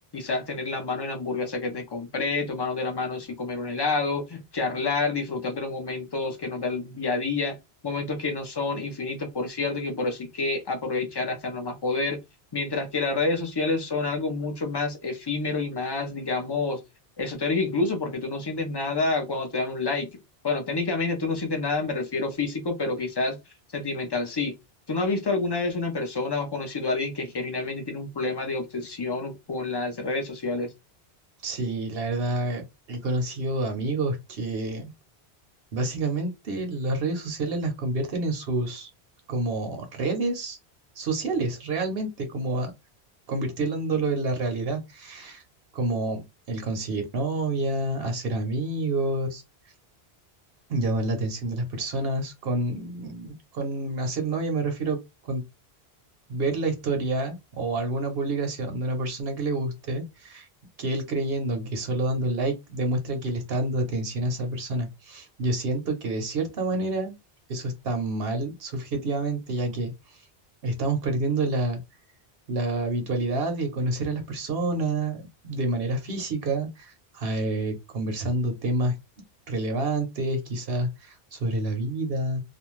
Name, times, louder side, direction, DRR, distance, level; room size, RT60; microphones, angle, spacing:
voice 1, 0.1-7.6 7.8-12.2 12.5-16.8 17.2-23.4 23.7-24.5 24.9-30.7, left 3 dB, 30° left, 0.5 m, -28 dB
voice 2, 31.4-34.9 35.7-38.9 39.3-40.6 41.0-42.7 43.3-45.4 45.7-49.4 50.7-55.4 56.3-60.5 60.8-67.1 67.5-69.9 70.6-71.8 72.5-79.0 79.5-82.4, right 2 dB, 70° right, 0.9 m, -28 dB
2.4 x 2.2 x 3.0 m
omnidirectional pair, 1.1 m